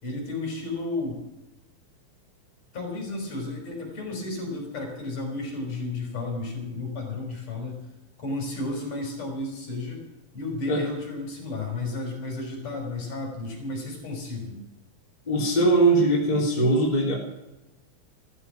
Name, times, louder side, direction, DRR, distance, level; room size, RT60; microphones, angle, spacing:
voice 1, 0.0-1.2 2.7-7.9 8.2-10.0 10.3-14.6, left 2 dB, 45° left, 1 dB, 6.0 m, -32 dB
voice 2, 15.3-17.1, right 2 dB, 10° left, -3 dB, 3.4 m, -21 dB
15.0 x 14.5 x 6.1 m, 0.99 s
omnidirectional pair, 4.2 m